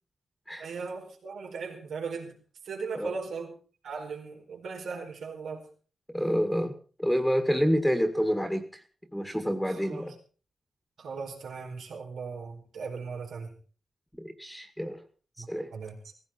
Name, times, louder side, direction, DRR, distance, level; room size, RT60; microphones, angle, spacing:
voice 1, 0.6-2.4 2.6-3.5 3.8-5.6 9.6-10.0 11.0-13.5 15.4-15.5 15.7-16.0, right 5 dB, 80° right, 1 dB, 4.7 m, -38 dB
voice 2, 6.1-8.8 9.1-10.2 14.2-15.0 15.5-15.7, equal, ahead, 6 dB, 2.0 m, -28 dB
17.0 x 16.5 x 4.4 m, 0.39 s
cardioid pair, 95°, 0 cm